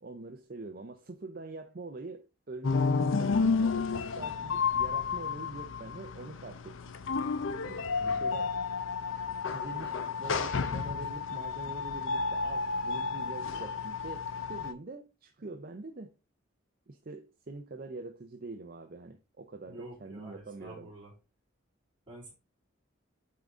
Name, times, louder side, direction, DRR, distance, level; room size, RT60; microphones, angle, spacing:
voice 1, 0.0-6.9 7.6-8.6 9.4-16.2 16.9-20.9, right 3 dB, 45° right, 0.6 m, -44 dB
sound 1, 2.6-14.7, left 5 dB, 70° left, 0.6 m, -31 dB
voice 2, 7.9-8.4 19.7-21.1 22.1-22.3, right 1 dB, 25° right, 3.3 m, -48 dB
8.4 x 3.9 x 3.6 m
head